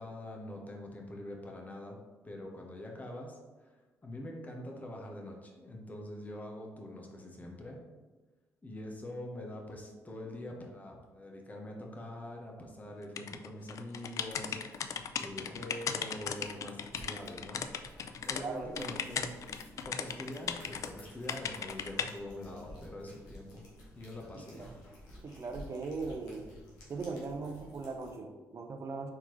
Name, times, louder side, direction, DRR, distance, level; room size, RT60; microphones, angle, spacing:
voice 1, 0.0-2.0 2.2-3.7 4.0-7.8 8.6-17.7 18.2-19.3 19.8-23.6 23.9-24.7, left 1 dB, 25° left, 0 dB, 1.0 m, -44 dB
sound 1, 13.2-18.4 18.8-20.9 21.3-22.1, left 7 dB, 60° left, 0.3 m, -37 dB
sound 2, 14.2-28.2, left 1 dB, 85° left, 1.4 m, -54 dB
voice 2, 18.3-18.9 24.5-24.7 25.2-26.5 26.9-29.1, right 4 dB, 45° right, 5 dB, 0.6 m, -39 dB
4.7 x 3.5 x 3.1 m, 1.3 s
supercardioid pair, 70°, 6 cm